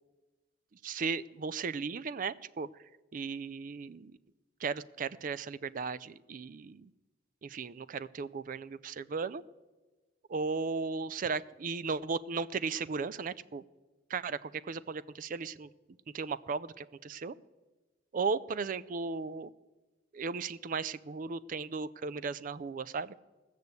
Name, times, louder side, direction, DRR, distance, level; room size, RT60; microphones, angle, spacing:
voice 1, 0.8-2.7 3.1-4.2 4.6-6.9 7.4-9.4 10.3-13.6 14.1-15.7 16.1-17.4 18.1-19.5 20.1-23.1, right 4 dB, 45° right, 18 dB, 0.4 m, -36 dB
16.0 x 6.6 x 8.2 m, 1.2 s
head